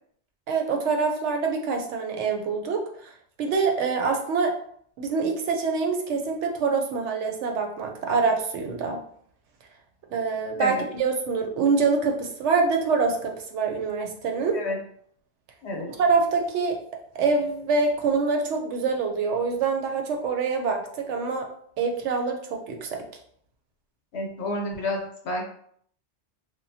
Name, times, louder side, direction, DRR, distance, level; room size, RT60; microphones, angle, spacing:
voice 1, 0.5-3.1 3.4-4.5 5.0-9.0 10.1-14.6 15.9-16.8 17.2-21.5 21.8-23.0, right 4 dB, 80° right, 3 dB, 0.9 m, -25 dB
voice 2, 24.1-25.5, left 2 dB, 70° left, 0 dB, 1.0 m, -30 dB
2.9 x 2.2 x 2.6 m, 0.63 s
omnidirectional pair, 1.2 m